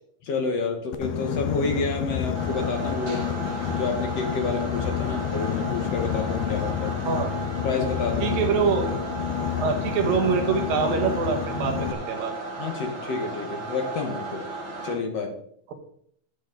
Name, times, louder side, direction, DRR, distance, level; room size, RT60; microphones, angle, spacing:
voice 1, 0.2-3.2 3.7-7.0 7.6-8.4 12.6-14.5 14.8-15.4, left 4 dB, 60° left, 3 dB, 2.0 m, -29 dB
Boat Water vehicle, 0.9-11.9, left 10 dB, 75° left, 2.5 m, -29 dB
sound 1, 2.3-14.9, right 2 dB, 35° right, 4.6 m, -35 dB
voice 2, 8.2-9.1 9.6-12.3, right 6 dB, 85° right, 4 dB, 3.2 m, -25 dB
12.0 x 8.2 x 3.9 m, 0.67 s
omnidirectional pair, 3.9 m